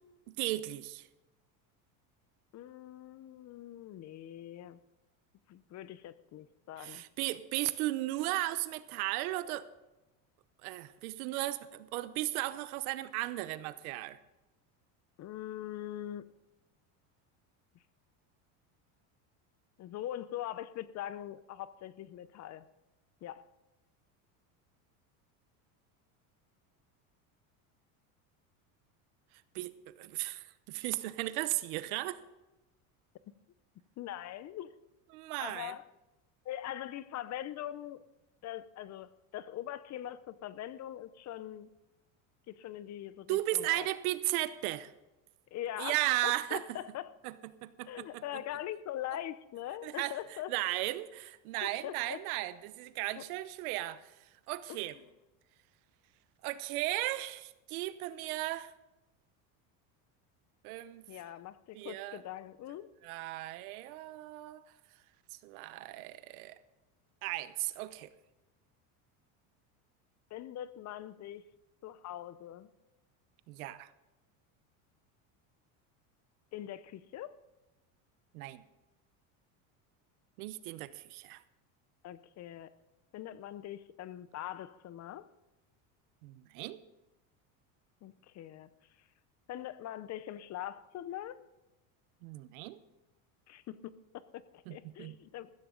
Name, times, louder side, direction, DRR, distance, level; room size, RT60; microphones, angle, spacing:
voice 1, 0.4-1.1 6.8-9.7 10.6-14.2 29.5-32.2 35.1-35.7 43.3-44.9 45.8-46.6 47.2-47.3 47.6-48.2 49.8-50.1 50.5-54.1 54.5-55.0 56.4-58.7 60.6-61.0 61.7-62.2 63.0-64.6 65.4-66.6 67.2-68.1 73.5-73.9 78.3-78.6 80.4-81.4 86.2-86.8 92.2-92.8 94.7-95.2, right 17 dB, 80° right, 0.9 m, -36 dB
voice 2, 2.5-4.8 5.5-7.0 15.2-16.2 19.8-22.7 23.2-23.4 34.0-34.7 35.4-35.9 36.4-38.0 38.4-41.7 42.5-43.9 45.5-47.1 47.8-50.5 51.6-52.2 53.2-53.3 54.7-55.0 61.1-62.9 70.3-71.4 71.8-72.7 76.5-77.3 82.0-82.7 83.1-85.3 88.0-88.7 89.5-91.4 93.5-95.5, left 12 dB, 40° left, 0.7 m, -42 dB
15.0 x 14.0 x 3.8 m
supercardioid pair, 120°, 43 cm